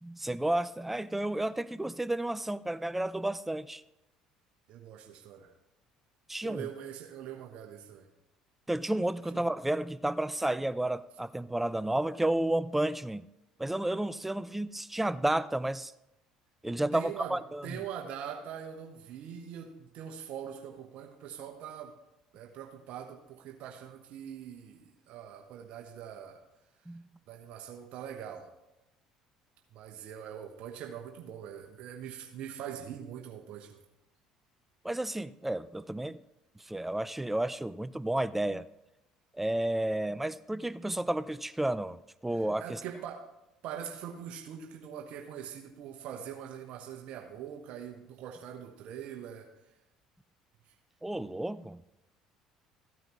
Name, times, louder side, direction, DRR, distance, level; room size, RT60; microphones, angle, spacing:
voice 1, 0.0-3.8 6.3-6.7 8.7-13.3 13.6-15.9 16.6-17.8 26.9-27.1 34.8-36.2 36.7-38.7 39.3-42.8 51.0-51.8, right 1 dB, 10° right, 0.4 m, -31 dB
voice 2, 4.7-5.5 6.4-8.1 9.3-9.5 16.9-17.4 17.6-21.9 22.3-26.4 27.3-28.5 29.7-33.8 42.3-43.2 43.6-49.5, right 9 dB, 65° right, 1.0 m, -43 dB
14.5 x 9.1 x 3.1 m
hypercardioid pair, 65°, 2 cm